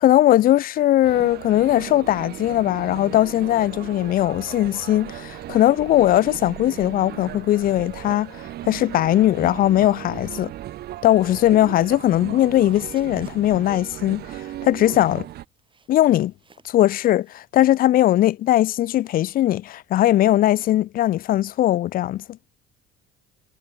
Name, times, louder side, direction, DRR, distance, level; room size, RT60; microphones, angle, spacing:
voice 1, 0.0-10.5 11.0-14.3 14.6-15.2 15.9-16.3 16.6-22.2, left 13 dB, 45° left, 0.4 m, -19 dB
sound 1, 1.0-15.4, right 14 dB, 50° right, 0.6 m, -37 dB
sound 2, 11.6-12.1 12.4-17.4, right 5 dB, 25° right, 4.9 m, -58 dB
cardioid pair, 120°, 21 cm